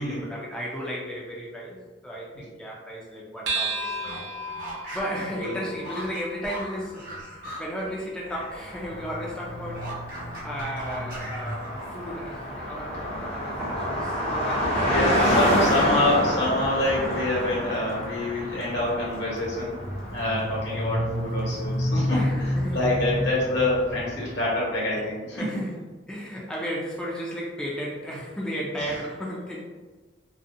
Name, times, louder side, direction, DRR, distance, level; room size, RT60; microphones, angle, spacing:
voice 1, 0.0-1.8 2.0-4.2 4.9-9.9 10.4-16.1 22.1-22.9 23.5-23.6 24.9-29.6, equal, 5° left, -5 dB, 0.3 m, -34 dB
sound 1, 3.5-8.2, right 2 dB, 80° right, 0.5 m, -35 dB
sound 2, 3.9-8.6 8.9-12.2, right 1 dB, 50° right, 0.8 m, -40 dB
Car passing by, 8.5-24.5, equal, 35° left, 0.6 m, -28 dB
voice 2, 14.6-19.8 20.1-25.4 28.8-28.9, left 1 dB, 75° left, -6 dB, 1.0 m, -26 dB
2.5 x 2.0 x 2.5 m, 1.2 s
head